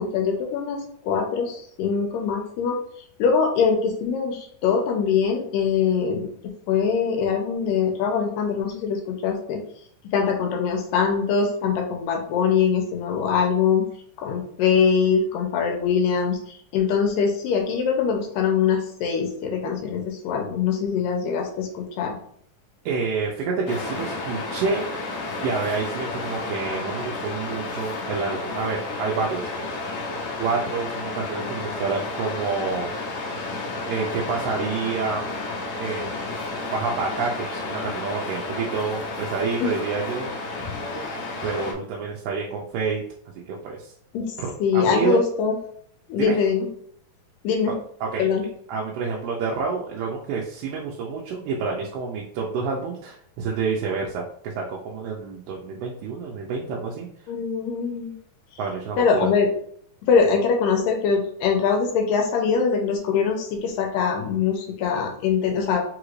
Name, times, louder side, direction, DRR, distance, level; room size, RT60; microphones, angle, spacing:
voice 1, 0.0-2.8 3.2-6.3 6.7-9.6 10.0-13.9 14.2-22.2 39.6-39.7 40.9-41.1 44.1-44.3 44.6-45.6 46.1-46.7 47.4-47.8 48.2-48.5 57.3-58.1 59.0-59.5 60.0-65.8, left 6 dB, 90° left, 2 dB, 2.4 m, -23 dB
voice 2, 22.9-24.9 25.4-29.4 30.4-32.9 33.9-35.2 35.8-36.4 36.7-40.3 41.4-43.0 43.5-43.9 44.7-45.2 46.2-46.4 48.0-48.3 48.7-57.1 58.6-59.3, right 4 dB, 85° right, -2 dB, 2.3 m, -28 dB
Waves surf, 23.7-41.7, left 2 dB, 70° left, 1.9 m, -31 dB
5.5 x 2.5 x 3.1 m, 0.63 s
omnidirectional pair, 3.9 m